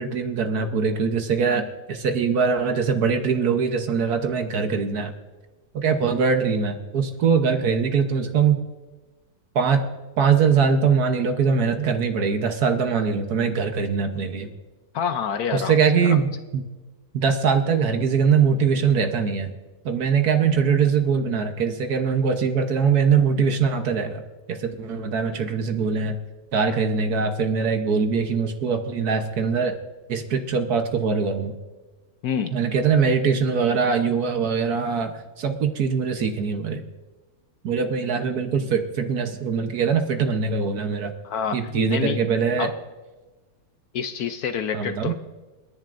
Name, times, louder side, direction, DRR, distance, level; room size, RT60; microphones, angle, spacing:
voice 1, 0.0-5.1 5.7-8.6 9.5-9.9 10.2-14.5 15.5-16.6 17.1-19.5 19.8-24.2 24.5-26.2 26.5-29.8 30.1-31.6 32.5-36.8 37.6-41.1 41.5-42.7 44.7-45.1, right 6 dB, 60° right, 6 dB, 1.4 m, -22 dB
voice 2, 14.9-16.2 32.2-32.5 41.2-41.6 41.9-42.2 42.6-42.7 43.9-45.1, left 7 dB, 70° left, 9 dB, 1.0 m, -27 dB
29.0 x 11.0 x 2.6 m, 1.2 s
omnidirectional pair, 1.9 m